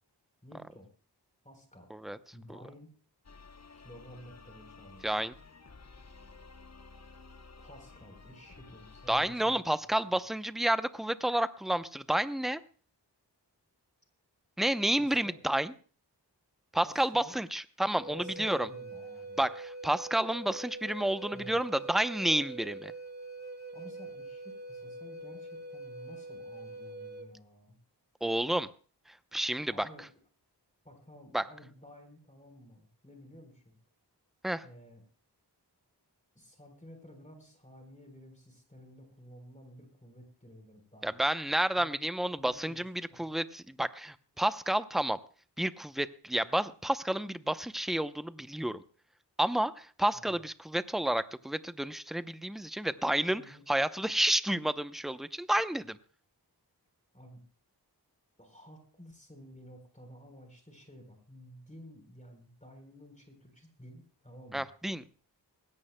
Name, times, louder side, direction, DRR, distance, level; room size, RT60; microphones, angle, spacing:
voice 1, 0.4-0.9 1.4-1.9 2.3-2.9 3.7-5.1 7.6-9.9 15.0-15.3 16.7-17.3 18.1-19.4 21.3-21.6 23.7-27.8 29.7-30.1 30.8-33.8 34.6-35.0 36.3-41.1 41.8-42.0 42.3-42.8 43.1-43.2 50.1-50.3 53.3-53.6 57.1-57.4 58.4-64.7, equal, 20° left, 4 dB, 3.8 m, -53 dB
sound 1, 3.2-9.4, left 4 dB, 40° left, 0.9 m, -53 dB
voice 2, 5.0-5.3 9.1-12.6 14.6-15.7 16.7-18.7 19.4-22.9 28.2-28.7 29.1-29.9 31.3-31.4 34.4-34.6 41.0-45.2 45.6-48.8 49.4-56.0 64.5-65.2, right 1 dB, ahead, 12 dB, 0.7 m, -30 dB
Wind instrument woodwind instrument, 18.0-27.3, right 2 dB, 25° right, 1.7 m, -44 dB
20.0 x 16.5 x 2.2 m, 0.40 s
wide cardioid pair, 45°, 42 cm